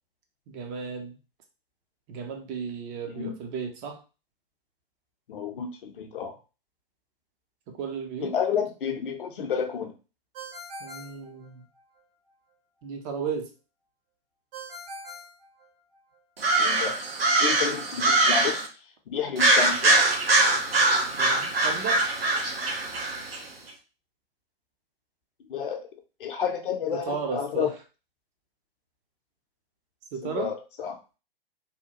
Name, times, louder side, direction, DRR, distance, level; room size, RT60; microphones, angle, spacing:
voice 1, 0.5-1.2 2.1-4.0 7.7-8.3 10.8-11.6 12.8-13.5 21.2-22.0 26.9-27.7 30.1-30.5, right 6 dB, 25° right, 4 dB, 0.5 m, -34 dB
voice 2, 5.3-6.3 8.2-9.9 16.6-17.0 17.4-18.7 19.1-20.1 25.5-25.9 26.2-27.7 30.2-31.0, left 7 dB, 60° left, 4 dB, 0.6 m, -30 dB
Ringtone, 10.3-12.0 14.5-16.2, right 1 dB, 40° right, 0.9 m, -43 dB
sound 1, 16.4-18.7 19.4-23.4, right 2 dB, 75° right, 0.8 m, -23 dB
2.8 x 2.2 x 2.8 m, 0.32 s
figure-of-eight pair, 115°, 30 cm